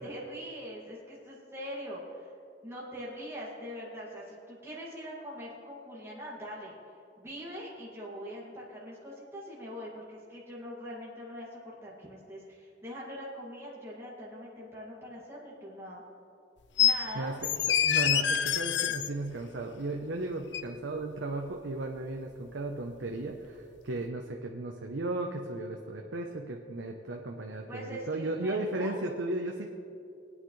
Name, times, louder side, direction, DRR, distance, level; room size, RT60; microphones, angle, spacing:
voice 1, 0.0-2.3 2.6-6.8 7.2-16.0 16.8-17.4 27.7-29.0, equal, 15° right, -6 dB, 2.2 m, -42 dB
sound 1, 16.8-17.0 17.4-19.1 20.5-20.6, left 9 dB, 65° left, 0.5 m, -26 dB
voice 2, 17.8-29.7, right 2 dB, 90° right, 1 dB, 0.8 m, -35 dB
22.0 x 9.1 x 3.2 m, 2.5 s
head